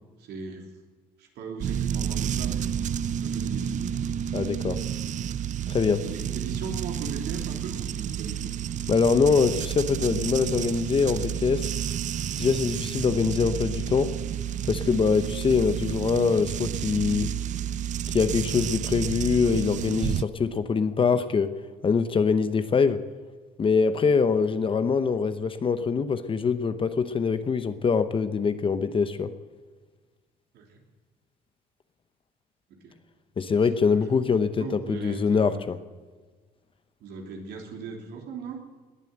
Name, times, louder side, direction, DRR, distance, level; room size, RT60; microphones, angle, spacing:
voice 1, 0.2-0.7 1.2-2.7 3.2-4.1 6.0-8.5 30.5-30.8 32.7-33.0 33.5-34.1 34.6-35.6 37.0-38.6, right 4 dB, 75° right, 1 dB, 3.3 m, -39 dB
sound 1, 1.6-20.2, right 9 dB, 45° right, 0.5 m, -30 dB
voice 2, 4.3-4.8 5.7-6.0 8.9-11.7 12.4-14.2 14.7-17.3 18.1-21.5 21.8-23.0 23.6-29.3 33.4-35.8, left 5 dB, 30° left, 11 dB, 0.9 m, -24 dB
19.5 x 9.1 x 7.8 m, 1.4 s
cardioid pair, 110°, 17 cm